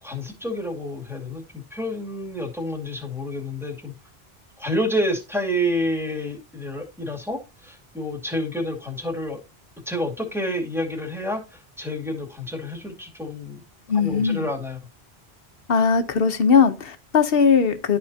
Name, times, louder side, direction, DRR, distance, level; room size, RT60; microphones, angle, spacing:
voice 1, 0.0-3.9 4.6-9.4 9.9-13.6 13.9-14.8, equal, ahead, 2.1 m, -29 dB
voice 2, 13.9-14.5 15.7-18.0, left 6 dB, 65° left, 1.1 m, -19 dB
12.5 x 4.3 x 2.7 m
omnidirectional pair, 1.0 m